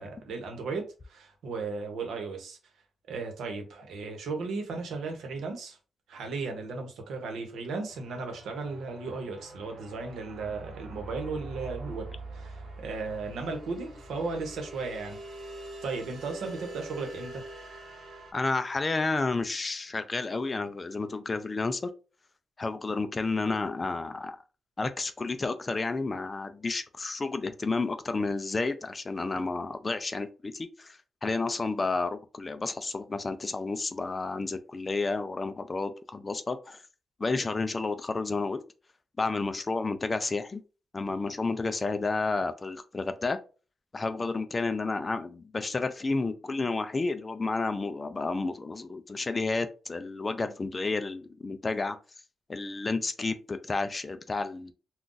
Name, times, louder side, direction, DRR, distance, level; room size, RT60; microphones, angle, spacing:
voice 1, 0.0-2.6 3.1-5.8 6.1-12.1 12.3-15.2 15.8-17.4, right 4 dB, 85° right, 3 dB, 0.9 m, -35 dB
sound 1, 7.9-18.3, right 2 dB, 50° right, 0.9 m, -44 dB
voice 2, 18.3-21.9 22.6-24.4 24.8-36.8 37.2-38.6 39.2-40.6 40.9-43.4 43.9-52.0 52.5-54.7, left 3 dB, 25° left, 10 dB, 0.3 m, -31 dB
2.5 x 2.3 x 3.8 m, 0.34 s
wide cardioid pair, 150°, 0 cm